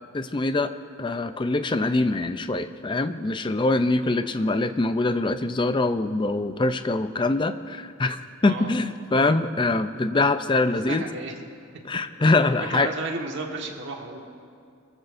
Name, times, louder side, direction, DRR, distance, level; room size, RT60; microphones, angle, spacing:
voice 1, 0.1-0.7 1.0-11.0 11.9-12.9, left 2 dB, 25° left, 10 dB, 0.5 m, -24 dB
voice 2, 10.7-11.3 12.6-14.2, right 3 dB, 60° right, 1 dB, 1.6 m, -33 dB
24.5 x 14.5 x 2.6 m, 2.3 s
head